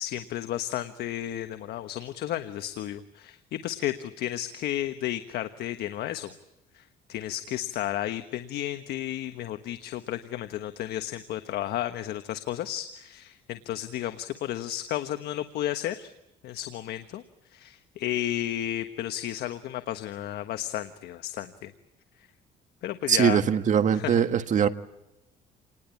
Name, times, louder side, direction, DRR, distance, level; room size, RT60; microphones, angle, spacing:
voice 1, 0.0-6.3 6.7-6.8 7.1-16.1 16.4-17.2 17.5-21.7 22.8-23.4 23.9-24.2, left 12 dB, 75° left, 9 dB, 1.3 m, -33 dB
voice 2, 23.1-24.7, right 8 dB, 45° right, 9 dB, 1.8 m, -22 dB
28.0 x 20.0 x 8.5 m, 0.92 s
cardioid pair, 110°, 17 cm